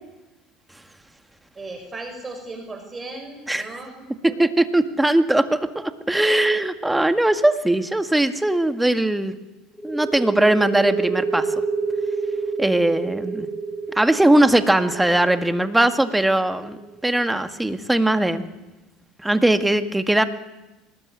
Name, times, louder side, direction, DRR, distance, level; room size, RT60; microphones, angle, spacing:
voice 1, 1.5-4.4, right 2 dB, 20° right, 4 dB, 5.7 m, -36 dB
voice 2, 4.4-9.4 9.8-11.5 12.6-13.5 14.0-18.4 19.2-20.2, right 1 dB, 5° right, 9 dB, 2.0 m, -20 dB
sound 1, 9.8-17.2, right 4 dB, 10° left, 6.6 m, -28 dB
24.5 x 20.0 x 9.9 m, 1.1 s
supercardioid pair, 90°, 0 cm